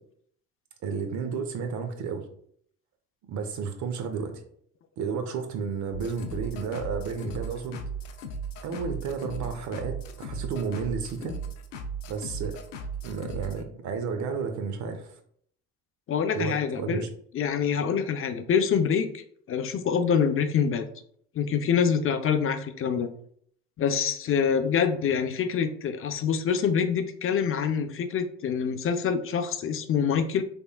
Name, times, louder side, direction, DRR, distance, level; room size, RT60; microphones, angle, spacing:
voice 1, 0.8-2.3 3.2-4.4 5.0-7.8 8.6-11.4 12.1-12.6 13.0-15.1 16.3-17.1, right 5 dB, 55° right, 6 dB, 0.8 m, -32 dB
sound 1, 5.9-13.6, right 3 dB, 90° left, 0.5 m, -36 dB
voice 2, 16.1-17.0 17.3-19.2 19.5-20.9 21.3-23.1 23.8-30.4, left 7 dB, 40° left, 9 dB, 0.5 m, -25 dB
3.5 x 3.4 x 2.3 m, 0.63 s
hypercardioid pair, 60°, 36 cm